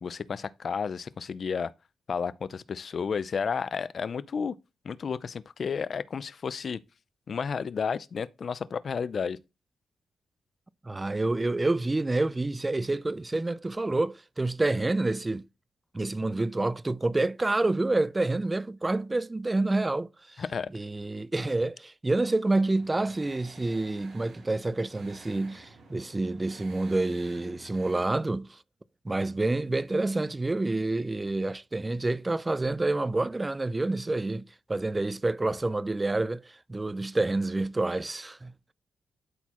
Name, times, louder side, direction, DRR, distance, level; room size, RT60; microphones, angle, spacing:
voice 1, 0.0-1.7 2.1-4.6 4.8-6.8 7.3-9.4 20.4-20.7, left 6 dB, 50° left, 0.5 m, -32 dB
voice 2, 10.8-15.5 15.9-20.4 20.7-28.6 29.0-38.5, right 2 dB, 20° right, 0.3 m, -28 dB
sound 1, 22.7-28.1, right 3 dB, 70° right, 3.0 m, -51 dB
12.0 x 4.1 x 3.0 m
cardioid pair, 110°, 0 cm